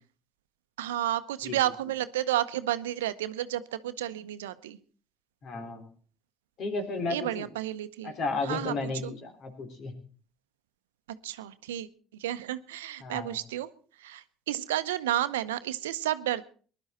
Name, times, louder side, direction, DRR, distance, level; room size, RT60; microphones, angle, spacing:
voice 1, 0.8-4.8 7.1-8.1 8.4-8.7 9.0-9.1 11.2-11.9 12.1-13.7 14.0-16.5, right 13 dB, 85° right, 13 dB, 0.7 m, -31 dB
voice 2, 5.4-5.8 6.6-7.5 8.0-9.9 13.0-13.4, left 3 dB, 55° left, 5 dB, 3.7 m, -33 dB
20.5 x 11.5 x 4.3 m, 0.40 s
hypercardioid pair, 60°, 0 cm